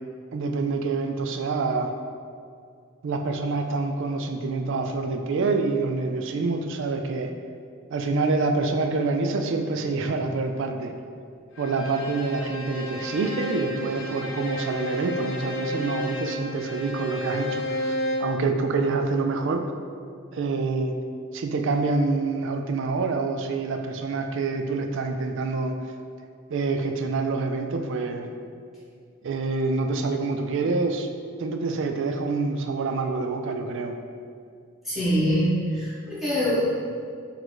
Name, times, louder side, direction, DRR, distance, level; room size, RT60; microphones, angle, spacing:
voice 1, 0.3-1.9 3.0-7.3 7.9-10.9 11.6-19.6 20.3-20.9 21.3-25.7 26.5-28.3 29.2-31.1 31.4-34.0, right 3 dB, 60° right, 5 dB, 0.4 m, -26 dB
Bowed string instrument, 11.5-18.4, left 1 dB, 65° left, 0.8 m, -32 dB
voice 2, 34.8-36.6, equal, ahead, -11 dB, 1.3 m, -24 dB
4.0 x 2.6 x 4.5 m, 2.3 s
head